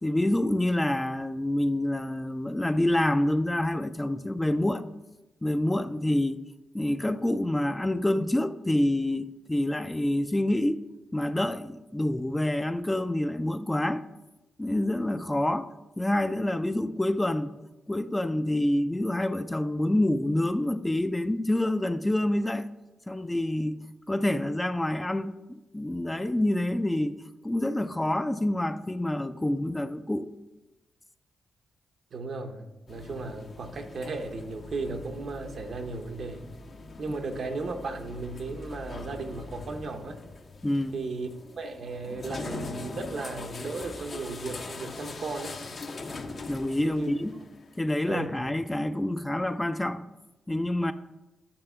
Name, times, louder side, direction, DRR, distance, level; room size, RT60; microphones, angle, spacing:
voice 1, 0.0-4.8 5.4-6.4 6.7-10.8 11.1-14.0 14.6-15.7 16.0-17.5 17.9-22.7 23.1-30.3 40.6-41.0 46.5-47.3 47.8-50.1 50.5-50.9, left 1 dB, 15° left, 0.4 m, -27 dB
voice 2, 32.1-36.4 37.0-40.2 40.9-41.3 41.6-45.5 46.8-47.1 48.1-48.4, right 3 dB, 65° right, 0.8 m, -35 dB
sound 1, 32.9-47.8, left 3 dB, 55° left, 0.8 m, -42 dB
8.7 x 3.5 x 5.5 m
cardioid pair, 60°, 0 cm